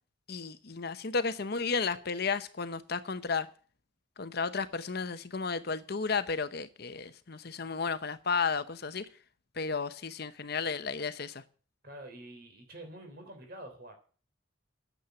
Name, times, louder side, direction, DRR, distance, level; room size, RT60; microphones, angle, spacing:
voice 1, 0.3-3.5 4.2-9.1 9.6-11.4, left 5 dB, 50° left, 0.8 m, -33 dB
voice 2, 11.8-13.9, right 1 dB, 50° right, 3.4 m, -47 dB
9.7 x 7.5 x 9.2 m
head